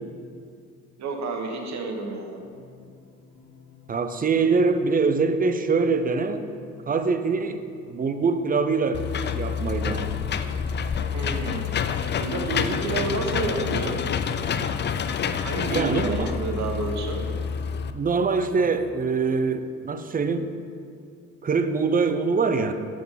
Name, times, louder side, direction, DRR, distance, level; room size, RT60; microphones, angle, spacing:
voice 1, 1.0-2.4 11.1-11.6 12.2-14.0 15.4-17.3, right 3 dB, 65° right, 2 dB, 1.2 m, -30 dB
sound 1, 2.4-19.9, left 7 dB, 70° left, 1.8 m, -51 dB
voice 2, 3.9-6.5 6.9-10.1 15.7-16.3 17.9-20.6 21.4-22.7, right 4 dB, 30° right, 9 dB, 0.5 m, -24 dB
Engine / Mechanisms, 8.9-17.9, left 7 dB, 35° left, 0.4 m, -28 dB
7.6 x 5.6 x 5.5 m, 2.3 s
cardioid pair, 90°, 30 cm